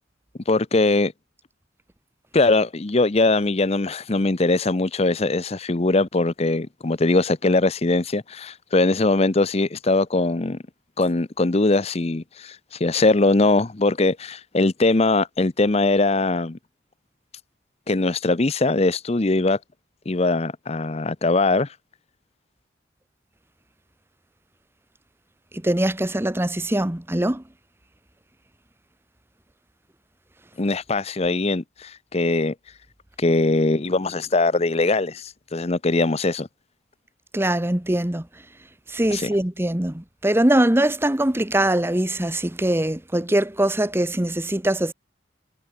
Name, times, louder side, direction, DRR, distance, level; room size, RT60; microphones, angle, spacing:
voice 1, 0.5-1.1 2.3-10.6 11.0-16.6 17.9-19.6 20.1-21.7 30.6-32.5 33.2-36.5 39.1-39.3, left 2 dB, 30° left, 0.7 m, -21 dB
voice 2, 25.5-27.4 37.3-38.3 38.9-44.9, right 1 dB, 10° right, 0.9 m, -22 dB
head